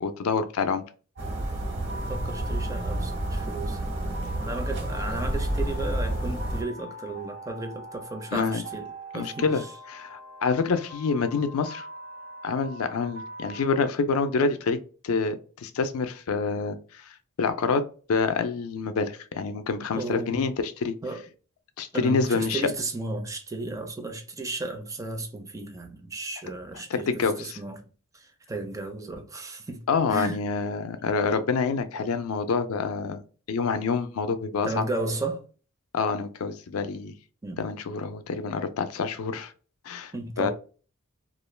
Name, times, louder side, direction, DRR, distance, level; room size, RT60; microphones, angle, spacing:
voice 1, 0.0-0.8 8.3-8.6 9.1-9.6 9.9-11.9 12.4-14.8 15.0-17.0 17.4-17.8 18.1-21.0 21.8-22.6 26.9-27.6 29.9-33.2 33.5-34.9 35.9-37.1 37.6-39.5 39.9-40.1 40.4-40.5, left 4 dB, 70° left, 0.4 m, -27 dB
sound 1, 1.2-6.6, right 1 dB, 55° right, 0.8 m, -30 dB
sound 2, 1.2-13.7, right 1 dB, 80° right, 0.9 m, -43 dB
voice 2, 2.1-4.0 4.3-9.7 19.9-20.5 21.0-21.2 21.9-27.8 28.1-30.4 34.6-35.4 37.4-37.6 40.1-40.5, right 2 dB, 15° right, 0.4 m, -34 dB
2.4 x 2.2 x 3.1 m
head